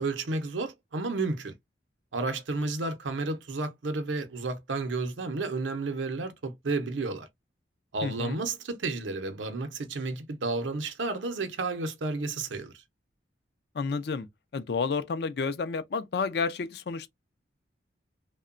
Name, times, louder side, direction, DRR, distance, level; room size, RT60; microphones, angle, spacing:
voice 1, 0.0-1.5 2.1-7.3 7.9-12.7, right 3 dB, 90° right, 0.6 m, -32 dB
voice 2, 8.0-8.4 13.7-14.3 14.5-17.1, left 4 dB, 60° left, 0.4 m, -30 dB
2.8 x 2.1 x 2.4 m
head